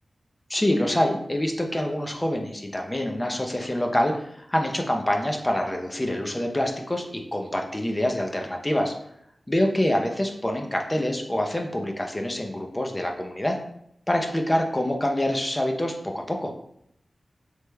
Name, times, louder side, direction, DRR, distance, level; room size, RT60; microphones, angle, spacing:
voice 1, 0.5-8.9 9.5-13.5 14.1-16.5, left 1 dB, 20° left, 2 dB, 0.6 m, -26 dB
3.3 x 3.2 x 3.3 m, 0.74 s
wide cardioid pair, 70°, 0 cm